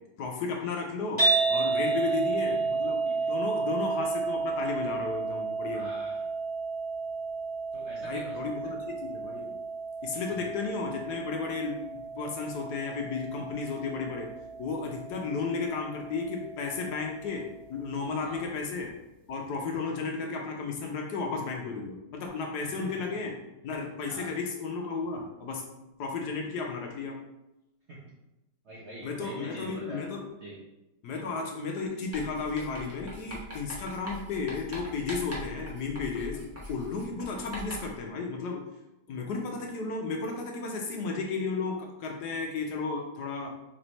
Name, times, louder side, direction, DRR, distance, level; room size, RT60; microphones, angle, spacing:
voice 1, 0.2-5.9 8.0-9.6 10.0-14.3 14.6-18.9 19.3-23.4 23.6-25.6 26.0-27.2 29.0-30.3 31.0-36.4 36.7-38.6 39.1-43.5, left 4 dB, 70° left, 1 dB, 1.1 m, -33 dB
sound 1, 1.2-17.4, right 4 dB, 20° left, 1.5 m, -32 dB
voice 2, 1.8-2.6 3.0-3.4 5.7-6.3 7.7-8.7 10.4-10.5 18.2-18.5 19.7-19.9 22.6-23.2 24.1-24.3 27.9-28.0 28.6-30.0 30.4-30.6, right 1 dB, 65° right, -5 dB, 0.7 m, -45 dB
Writing, 32.1-38.0, equal, 20° right, 0.3 m, -42 dB
3.4 x 3.1 x 4.0 m, 0.94 s
omnidirectional pair, 2.0 m